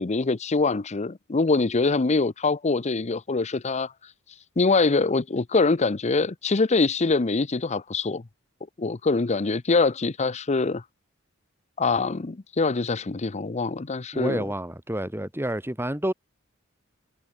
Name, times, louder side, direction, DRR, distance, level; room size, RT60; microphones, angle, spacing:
voice 1, 0.0-3.9 4.6-8.2 8.8-10.8 11.8-14.5, left 3 dB, 35° left, 0.7 m, -24 dB
voice 2, 14.1-16.1, right 1 dB, 10° right, 2.8 m, -29 dB
head